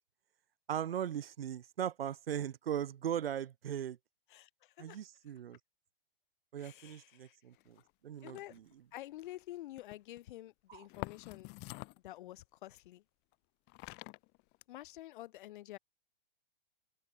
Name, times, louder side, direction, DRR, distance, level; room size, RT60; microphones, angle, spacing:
voice 1, 0.7-4.0 4.8-5.6 6.5-8.6 10.7-10.8, right 10 dB, 75° right, 6.9 m, -39 dB
voice 2, 4.3-5.0 6.6-7.4 8.2-8.6 8.9-11.5 12.0-13.0 14.7-15.8, left 15 dB, 55° left, 4.3 m, -49 dB
sound 1, 7.6-7.9 8.2-8.7 9.2-9.4 9.8-10.2 10.9-12.1 13.3-13.4 13.7-14.6, left 26 dB, 35° left, 3.1 m, -47 dB
open air
hypercardioid pair, 135°, 29 cm